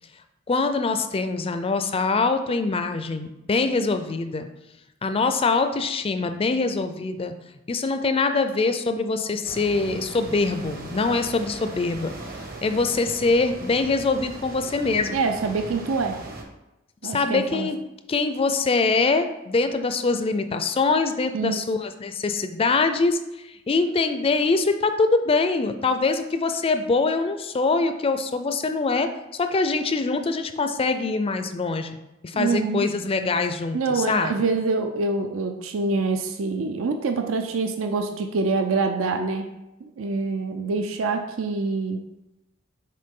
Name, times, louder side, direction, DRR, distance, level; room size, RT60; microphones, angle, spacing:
voice 1, 0.5-4.5 5.0-7.3 7.7-12.1 12.6-15.2 17.0-17.8 18.1-32.0 32.2-34.5, left 3 dB, 30° left, 8 dB, 0.4 m, -24 dB
sound 1, 9.4-16.4, right 2 dB, 45° right, 1.0 m, -39 dB
voice 2, 15.1-16.2 17.0-17.7 21.3-21.6 32.3-32.9 33.7-39.5 39.8-42.0, right 3 dB, 75° right, 5 dB, 0.5 m, -25 dB
6.6 x 4.2 x 3.7 m, 0.95 s
head